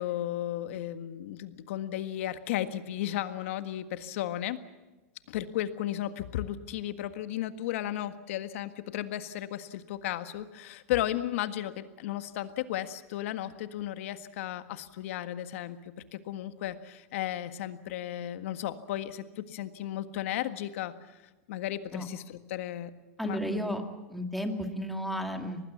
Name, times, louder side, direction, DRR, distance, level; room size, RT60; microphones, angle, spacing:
voice 1, 0.0-4.6 5.3-15.8 16.1-20.9 21.5-22.9 23.2-23.8, left 13 dB, 65° left, 10 dB, 1.7 m, -34 dB
voice 2, 23.2-23.8 24.1-25.6, equal, ahead, 4 dB, 2.2 m, -33 dB
24.5 x 19.5 x 7.3 m, 1.2 s
supercardioid pair, 145°, 8 cm